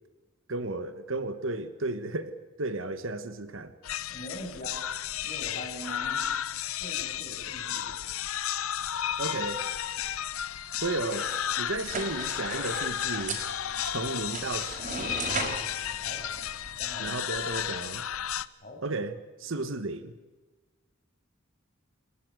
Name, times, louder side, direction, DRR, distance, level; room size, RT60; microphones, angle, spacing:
voice 1, 0.5-3.7 9.2-9.7 10.8-11.3 11.6-13.4 13.8-15.1 17.0-18.1 18.8-19.1 19.4-20.1, right 2 dB, 70° right, 11 dB, 1.3 m, -33 dB
sound 1, 3.8-18.5, left 10 dB, 90° left, 0.8 m, -33 dB
voice 2, 4.1-4.8 5.2-6.3 6.8-8.0 16.0-16.3 16.8-17.1 18.6-18.8, equal, 40° left, 1 dB, 7.6 m, -42 dB
sound 2, 11.0-13.6, equal, 5° right, 2.7 m, -49 dB
sound 3, 11.8-17.1, right 3 dB, 35° right, 5.1 m, -38 dB
29.0 x 13.0 x 9.1 m, 1.2 s
head